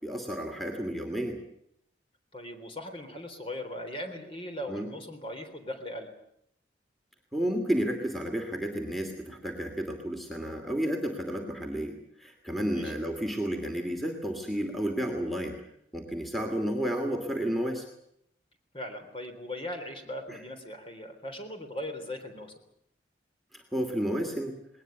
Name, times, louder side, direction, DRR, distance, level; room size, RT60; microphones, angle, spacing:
voice 1, 0.0-1.4 4.7-4.9 7.3-15.6 15.9-17.9 20.3-20.4 23.5-24.5, equal, ahead, 3 dB, 2.7 m, -31 dB
voice 2, 2.3-6.1 12.7-12.9 18.7-22.5, left 1 dB, 30° left, 6 dB, 3.7 m, -39 dB
20.5 x 19.5 x 9.2 m, 0.72 s
head